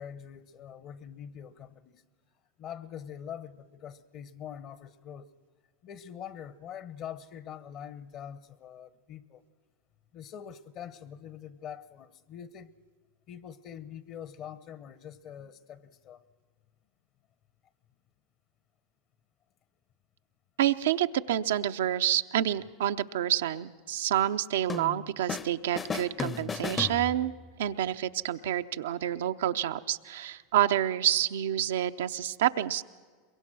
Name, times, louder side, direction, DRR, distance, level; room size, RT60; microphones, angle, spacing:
voice 1, 0.0-2.0 2.6-5.3 5.8-9.4 10.1-12.7 13.3-16.2, left 9 dB, 45° left, 0.9 m, -44 dB
voice 2, 20.6-27.3 27.6-32.8, right 11 dB, 80° right, 0.6 m, -28 dB
sound 1, 24.7-25.5 25.8-27.5, left 5 dB, 20° left, 0.6 m, -35 dB
23.0 x 22.5 x 6.2 m
hypercardioid pair, 105°, 0 cm